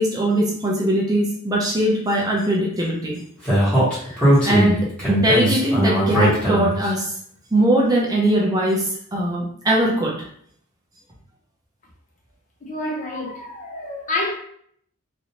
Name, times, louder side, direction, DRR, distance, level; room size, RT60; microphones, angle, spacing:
voice 1, 0.0-3.2 4.0-7.1 7.5-8.8 9.1-10.1, right 1 dB, 15° right, 0.5 m, -21 dB
Speech, 3.5-6.9, equal, 5° left, 1.4 m, -19 dB
voice 2, 12.6-14.3, left 2 dB, 35° left, 0.7 m, -28 dB
3.1 x 2.6 x 2.8 m
head